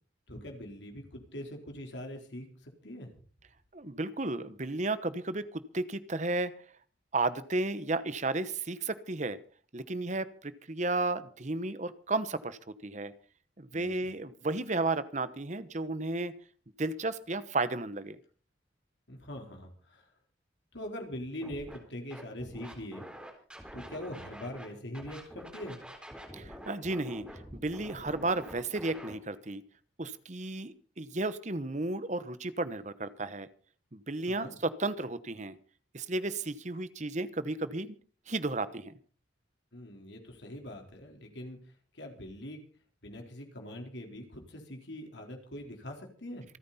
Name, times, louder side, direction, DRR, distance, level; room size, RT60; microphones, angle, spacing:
voice 1, 0.3-3.1 13.7-14.1 19.1-20.1 20.7-23.1 23.7-25.8 34.3-34.5 39.7-41.6 41.9-42.6 43.0-46.4, left 1 dB, 70° left, 2 dB, 4.1 m, -42 dB
voice 2, 3.7-6.5 7.1-9.4 9.7-13.1 13.6-16.3 16.8-18.2 26.3-27.3 27.5-29.6 30.0-33.5 33.9-35.6 35.9-38.0 38.3-38.9, right 2 dB, 40° right, 14 dB, 1.1 m, -33 dB
Scratching (performance technique), 21.4-21.8 22.1-24.7 24.9-29.1, equal, 5° right, 3.9 m, -46 dB
27.5 x 9.5 x 4.3 m, 0.42 s
head